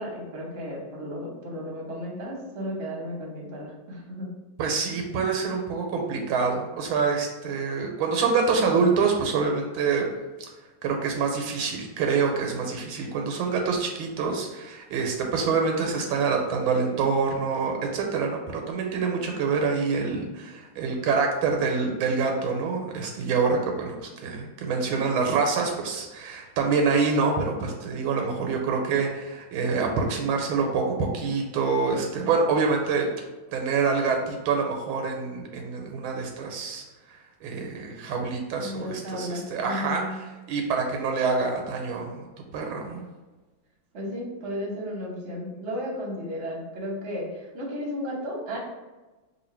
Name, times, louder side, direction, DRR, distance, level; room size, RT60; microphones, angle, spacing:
voice 1, 0.0-4.3 38.6-40.2 43.9-48.6, equal, 45° right, -3 dB, 1.0 m, -34 dB
voice 2, 4.6-10.1 10.8-24.0 24.2-33.1 33.5-36.8 37.4-40.2 40.5-42.3 42.5-43.0, right 5 dB, 80° right, 2 dB, 1.4 m, -26 dB
3.1 x 2.8 x 4.3 m, 1.2 s
omnidirectional pair, 2.3 m